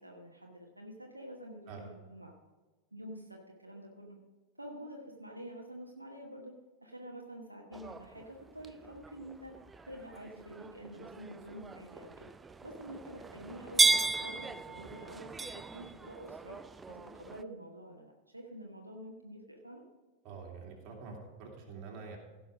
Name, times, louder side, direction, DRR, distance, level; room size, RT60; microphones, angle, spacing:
voice 1, 0.0-2.3 2.9-4.2 4.6-6.5 6.8-9.5 9.8-12.3 12.6-16.6 16.9-19.8, right 1 dB, 85° right, 0 dB, 1.1 m, -48 dB
sound 1, 7.7-17.4, right 3 dB, 15° right, 0.4 m, -35 dB
voice 2, 20.2-22.2, right 5 dB, 40° right, -1 dB, 2.8 m, -46 dB
16.0 x 5.9 x 4.9 m, 1.2 s
figure-of-eight pair, 90°, 0 cm